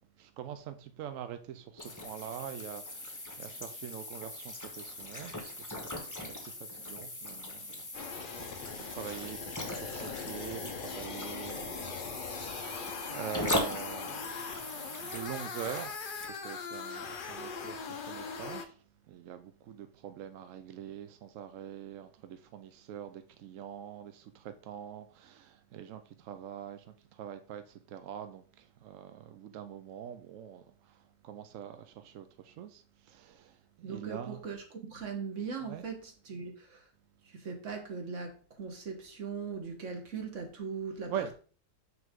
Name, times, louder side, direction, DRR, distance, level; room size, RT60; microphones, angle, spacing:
voice 1, 0.2-15.9 16.3-34.4 35.6-35.8 41.1-41.3, right 9 dB, 75° right, 0.7 m, -44 dB
sound 1, 1.8-16.3, left 1 dB, 15° left, 0.8 m, -40 dB
sound 2, 7.9-18.6, left 5 dB, 75° left, 0.4 m, -41 dB
voice 2, 33.8-36.9 37.3-41.3, right 5 dB, 45° right, 1.5 m, -40 dB
5.9 x 5.5 x 3.7 m
omnidirectional pair, 1.9 m